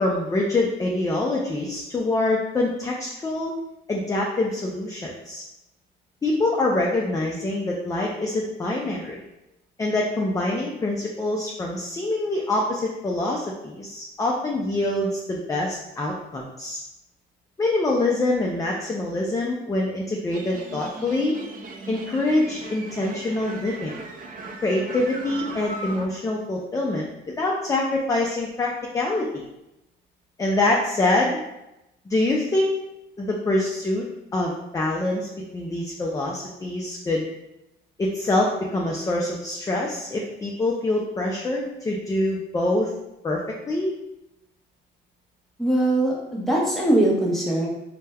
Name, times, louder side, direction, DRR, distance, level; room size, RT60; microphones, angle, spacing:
voice 1, 0.0-3.5 3.9-5.4 6.2-9.2 9.8-16.8 17.6-21.4 21.9-23.9 24.6-29.4 30.4-31.4 32.1-32.7 33.2-34.1 34.3-37.2 38.0-42.9 43.2-43.4 43.7-43.9, left 2 dB, 15° left, -1 dB, 0.3 m, -25 dB
sound 1, 20.3-26.1, right 2 dB, 45° right, 0.4 m, -38 dB
voice 2, 45.6-47.7, right 1 dB, ahead, -4 dB, 0.7 m, -21 dB
3.2 x 2.1 x 2.2 m, 0.90 s
cardioid pair, 90°, 20 cm